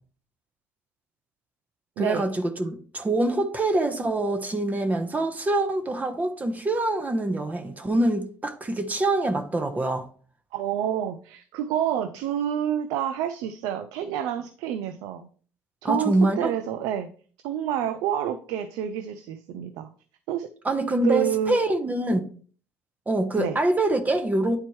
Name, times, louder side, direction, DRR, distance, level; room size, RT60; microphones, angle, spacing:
voice 1, 2.0-10.1 15.8-16.5 20.6-22.2 23.1-24.6, right 2 dB, 25° right, 1.0 m, -25 dB
voice 2, 10.5-15.3 15.8-17.1 17.4-19.9 20.3-20.5 21.0-21.6 23.4-23.6, right 10 dB, 75° right, 0.5 m, -28 dB
9.5 x 4.2 x 3.1 m
hypercardioid pair, 65°, 7 cm